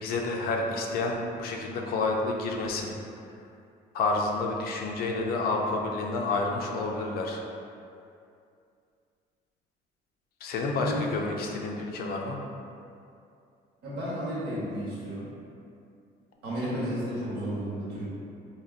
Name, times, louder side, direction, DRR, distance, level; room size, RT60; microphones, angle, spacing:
voice 1, 0.0-2.9 3.9-7.4 10.4-12.4, left 3 dB, 65° left, 0 dB, 0.4 m, -29 dB
voice 2, 10.8-11.1 13.8-15.3 16.4-18.1, equal, 85° right, -7 dB, 1.0 m, -32 dB
3.8 x 2.0 x 2.4 m, 2.5 s
cardioid pair, 110°, 17 cm